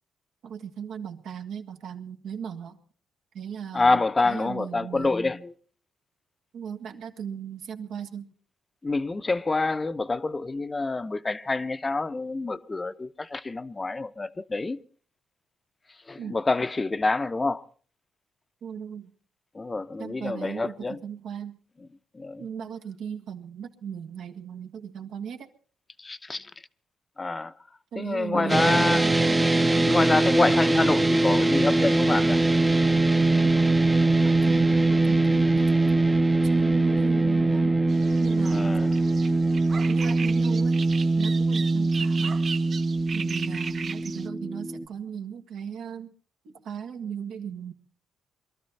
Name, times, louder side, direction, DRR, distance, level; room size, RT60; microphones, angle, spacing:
voice 1, 0.4-2.8 3.3-5.1 6.5-8.3 16.2-16.4 18.6-19.1 20.0-21.6 22.4-25.5 27.9-29.0 34.2-36.0 36.5-37.8 38.1-38.8 39.9-40.8 41.2-42.4 43.1-46.1 46.5-47.7, right 8 dB, 75° right, 1.9 m, -37 dB
voice 2, 3.7-5.5 8.8-14.8 16.1-17.6 19.5-21.0 22.1-22.5 26.0-26.5 27.2-27.5 27.9-29.1 29.9-32.4 38.4-38.9, left 3 dB, 25° left, 0.8 m, -27 dB
sound 1, 28.5-44.9, right 2 dB, 15° right, 0.8 m, -22 dB
sound 2, 37.9-44.3, right 5 dB, 45° right, 0.7 m, -38 dB
22.5 x 13.0 x 4.2 m
cardioid pair, 90°, 0 cm